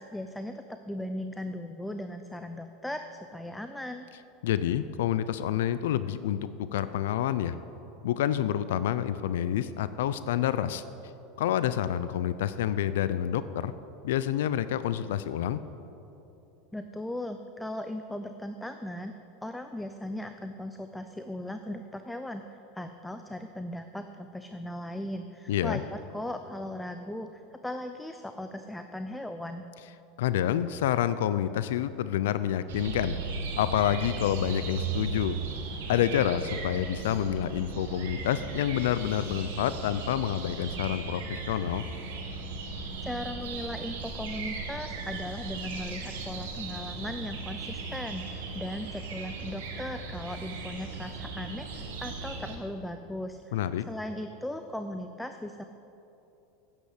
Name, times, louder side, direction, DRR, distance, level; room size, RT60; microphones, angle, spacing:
voice 1, 0.0-4.1 16.7-19.1 19.4-22.4 22.7-29.7 43.0-55.6, left 1 dB, 5° left, 7 dB, 0.5 m, -38 dB
voice 2, 4.4-6.4 6.7-7.5 8.0-10.8 11.4-13.7 14.0-15.6 25.5-25.8 30.2-33.1 33.6-35.4 35.9-41.8 53.5-53.8, left 11 dB, 85° left, 14 dB, 0.4 m, -28 dB
sound 1, 32.7-52.6, right 4 dB, 85° right, 2.0 m, -37 dB
9.6 x 8.4 x 8.3 m, 2.9 s
supercardioid pair, 130°, 0 cm